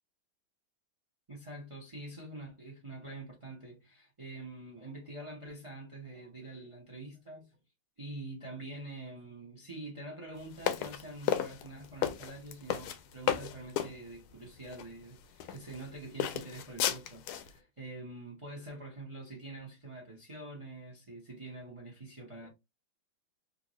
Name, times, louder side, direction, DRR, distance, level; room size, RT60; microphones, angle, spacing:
voice 1, 1.3-7.5 8.0-22.5, right 2 dB, 55° right, 0.3 m, -46 dB
sound 1, 10.6-13.9 14.7-14.8 15.4-15.9 16.2-17.5, left 10 dB, 80° left, 1.4 m, -33 dB
3.5 x 2.6 x 3.0 m
omnidirectional pair, 2.3 m